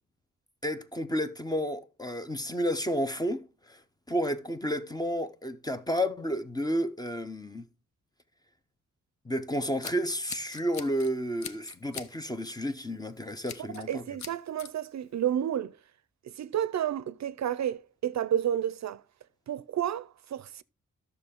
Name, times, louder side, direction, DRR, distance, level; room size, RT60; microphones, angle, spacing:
voice 1, 0.6-3.8 4.1-7.7 9.2-14.0, equal, 15° left, 0.5 m, -31 dB
Scissors, 9.5-11.1 11.4-12.1 12.5-12.7 13.4-13.9 14.2-14.7, left 7 dB, 60° left, 0.8 m, -42 dB
voice 2, 13.7-15.7 16.4-19.0 19.5-20.6, right 10 dB, 60° right, 0.5 m, -31 dB
12.5 x 6.7 x 3.6 m
wide cardioid pair, 165°, 31 cm